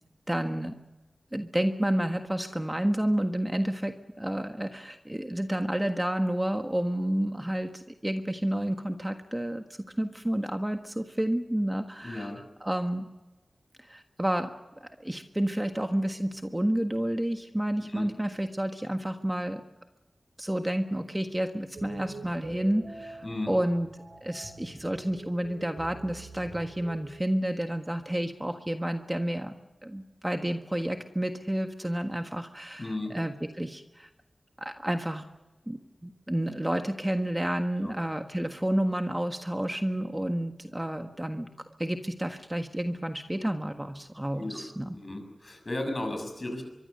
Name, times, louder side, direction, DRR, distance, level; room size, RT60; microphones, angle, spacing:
voice 1, 0.3-0.7 1.3-9.6 10.0-12.3 12.6-13.0 13.8-14.5 14.8-19.6 20.4-23.9 24.2-29.5 29.8-34.1 34.6-35.2 35.7-41.5 41.8-44.9, right 1 dB, 15° right, 5 dB, 1.5 m, -30 dB
voice 2, 12.0-12.4 17.9-18.1 23.2-23.5 32.8-33.2 37.8-37.9 44.4-44.6 45.0-46.6, left 2 dB, 45° left, 6 dB, 6.7 m, -34 dB
sound 1, 21.8-27.1, right 3 dB, 90° right, 6.1 m, -45 dB
24.0 x 23.5 x 6.7 m, 1.1 s
wide cardioid pair, 55°, 0 cm